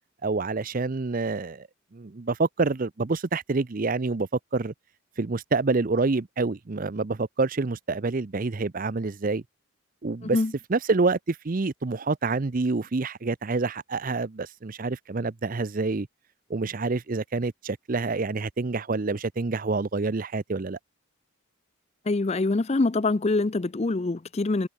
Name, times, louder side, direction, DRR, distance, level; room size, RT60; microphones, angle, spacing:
voice 1, 0.2-1.7 1.9-4.7 5.2-9.4 10.0-10.4 10.7-16.1 16.5-20.8, right 3 dB, 40° right, 0.6 m, -27 dB
voice 2, 22.1-24.7, left 3 dB, 30° left, 0.5 m, -24 dB
head